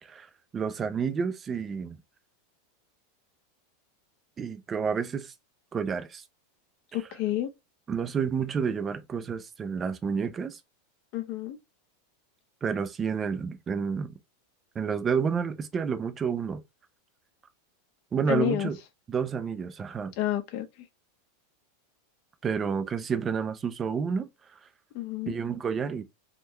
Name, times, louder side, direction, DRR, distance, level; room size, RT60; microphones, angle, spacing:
voice 1, 0.0-2.0 4.4-5.3 5.7-6.2 7.9-10.6 12.6-14.1 14.8-16.6 18.1-18.8 19.1-20.1 22.4-24.3 25.3-26.0, right 6 dB, 15° right, 0.3 m, -30 dB
voice 2, 6.9-7.5 11.1-11.6 18.3-18.7 20.2-20.7 24.9-25.3, left 13 dB, 40° left, 0.6 m, -29 dB
3.6 x 2.2 x 2.9 m
supercardioid pair, 180°, 0 cm